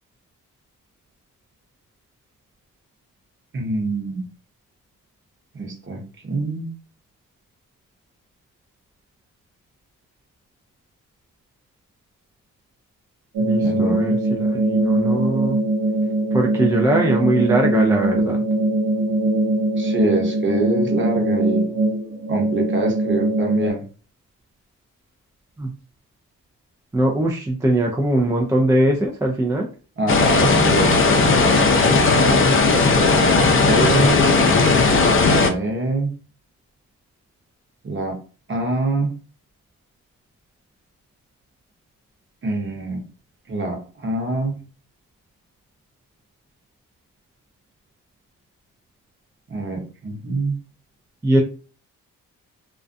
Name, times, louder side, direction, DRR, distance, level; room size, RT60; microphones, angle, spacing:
voice 1, 3.5-4.2 5.5-6.7 13.6-14.0 19.8-21.7 22.3-23.9 30.0-31.0 31.8-32.5 33.1-34.2 35.2-36.1 37.8-38.2 38.5-39.1 42.4-43.0 43.5-44.6 49.5-50.5, right 2 dB, 35° right, 2 dB, 0.9 m, -25 dB
sound 1, 13.3-23.7, right 2 dB, 90° right, 0.8 m, -21 dB
voice 2, 13.4-15.6 16.3-18.4 25.6-25.7 26.9-29.7 51.2-51.4, right 1 dB, 10° right, 0 dB, 0.3 m, -21 dB
sound 2, 30.1-35.5, left 3 dB, 40° left, 0.5 m, -16 dB
2.3 x 2.2 x 2.5 m, 0.38 s
cardioid pair, 85°, 34 cm